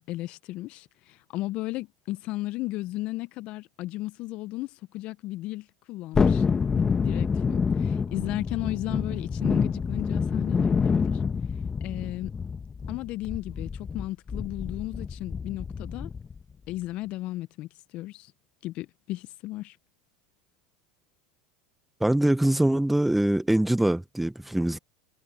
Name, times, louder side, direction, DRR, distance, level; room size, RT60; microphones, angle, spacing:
voice 1, 0.0-6.4 6.7-11.2 11.8-12.3 12.9-16.1 16.7-18.3 18.6-19.8, left 18 dB, 55° left, 1.0 m, -35 dB
Thunderstorm, 6.1-16.4 16.7-16.8, left 5 dB, 25° left, 1.3 m, -27 dB
voice 2, 22.0-24.8, right 1 dB, 5° right, 1.3 m, -23 dB
hypercardioid pair, 90°, 2 cm